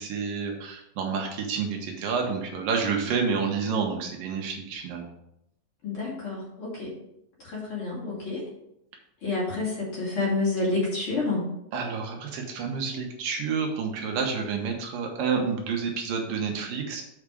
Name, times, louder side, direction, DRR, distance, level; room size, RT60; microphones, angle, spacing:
voice 1, 0.0-5.1 11.7-17.0, right 5 dB, 75° right, 2 dB, 2.7 m, -29 dB
voice 2, 5.8-6.9 7.4-8.4 9.2-11.5, left 3 dB, 40° left, -5 dB, 3.0 m, -29 dB
7.9 x 5.0 x 4.9 m, 0.80 s
omnidirectional pair, 4.1 m